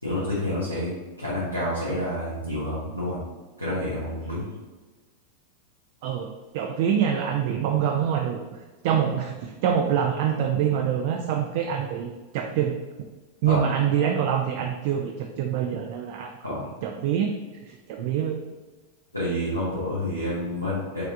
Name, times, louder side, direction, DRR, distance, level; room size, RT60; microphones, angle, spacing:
voice 1, 0.0-0.9 1.2-3.2 3.6-4.5 13.4-13.6 16.4-16.7 19.1-21.0, left 1 dB, 90° left, -10 dB, 1.2 m, -28 dB
voice 2, 6.0-8.4 8.8-12.7 13.4-16.3 16.8-18.4, right 8 dB, 50° right, 3 dB, 0.3 m, -25 dB
4.7 x 3.3 x 2.5 m, 1.3 s
figure-of-eight pair, 90°, 0 cm